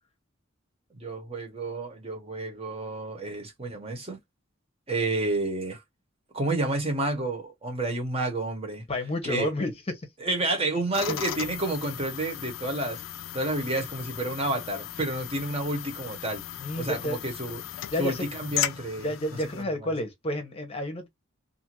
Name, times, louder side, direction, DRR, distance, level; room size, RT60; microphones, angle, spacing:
voice 1, 0.9-4.2 4.9-5.8 6.3-8.8 9.2-9.5 10.2-13.0 13.3-16.4 16.8-17.6 18.0-19.9, right 2 dB, 30° right, 1.0 m, -30 dB
voice 2, 8.9-9.7 11.1-11.2 16.6-17.2 17.9-18.3 19.0-21.1, left 1 dB, 30° left, 0.7 m, -30 dB
sound 1, 10.9-19.6, left 11 dB, 75° left, 0.4 m, -36 dB
2.5 x 2.4 x 2.9 m
head